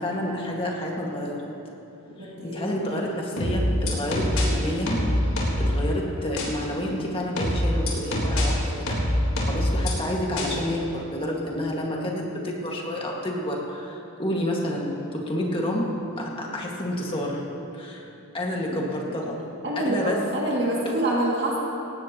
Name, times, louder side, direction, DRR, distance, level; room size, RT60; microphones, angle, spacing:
voice 1, 0.0-1.5 2.2-5.0 5.6-9.0 9.5-17.4 17.7-18.0 18.3-19.4 19.8-20.2 20.9-21.0, left 1 dB, 25° left, -2 dB, 1.9 m, -29 dB
voice 2, 2.2-3.0 16.4-16.6 18.7-18.8 19.2-19.3 19.6-21.6, right 1 dB, 50° right, -5 dB, 2.5 m, -27 dB
sound 1, 3.4-4.4 4.9-5.7 6.4-6.5 7.4-8.4 8.9-9.9 10.4-10.5, left 1 dB, 80° left, 3.7 m, -24 dB
18.0 x 17.5 x 3.0 m, 2.8 s
head